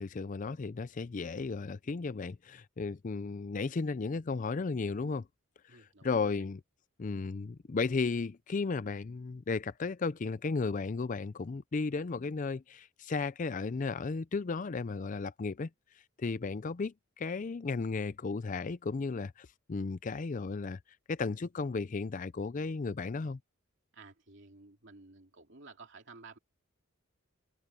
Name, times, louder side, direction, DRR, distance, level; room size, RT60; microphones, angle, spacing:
voice 1, 0.0-5.3 5.7-6.6 7.0-15.7 16.2-20.8 21.1-23.4, left 4 dB, 40° left, 0.4 m, -34 dB
voice 2, 5.7-6.1 23.9-26.4, right 3 dB, 60° right, 2.7 m, -53 dB
head